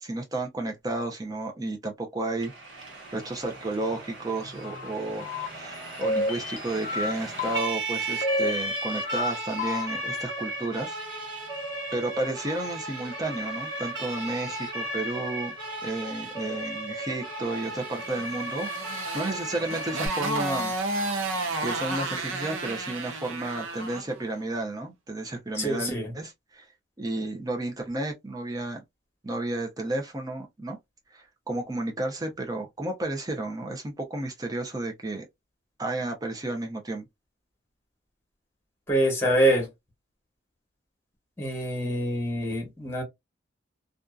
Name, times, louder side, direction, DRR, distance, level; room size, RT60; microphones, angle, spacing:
voice 1, 0.0-2.5 2.8-5.3 5.6-11.0 11.9-15.5 15.8-20.7 21.5-26.7 27.0-28.8 29.2-30.8 31.1-35.3 35.8-37.1, right 2 dB, 20° right, 0.6 m, -32 dB
Siren, 2.4-20.1, right 2 dB, 60° right, 1.1 m, -35 dB
sound 1, 4.6-4.9 5.2-5.5 6.0-7.1 7.4-7.7 8.2-9.3 9.6-9.9, left 2 dB, 45° left, 0.5 m, -30 dB
Motorcycle, 18.1-24.1, right 2 dB, 80° right, 0.6 m, -32 dB
voice 2, 25.5-26.1 38.9-39.7 41.4-43.0, right 1 dB, 15° left, 1.1 m, -25 dB
2.6 x 2.3 x 2.3 m
head